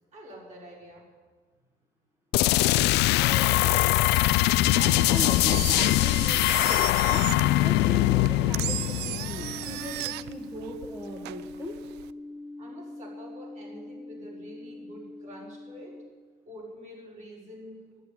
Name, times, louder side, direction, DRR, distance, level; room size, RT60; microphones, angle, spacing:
voice 1, 0.1-1.1 12.6-15.9 16.5-18.0, equal, 45° right, -3 dB, 5.4 m, -46 dB
sound 1, 2.3-9.9, left 16 dB, 85° left, 0.4 m, -22 dB
voice 2, 3.2-3.9 4.2-7.3 7.6-11.8, equal, 15° right, -1 dB, 1.9 m, -39 dB
Engine, 4.8-12.1, right 16 dB, 80° right, 0.4 m, -37 dB
sound 2, 9.4-16.1, left 2 dB, ahead, 0.6 m, -43 dB
11.0 x 9.6 x 9.3 m, 1.4 s
cardioid pair, 110°, 17 cm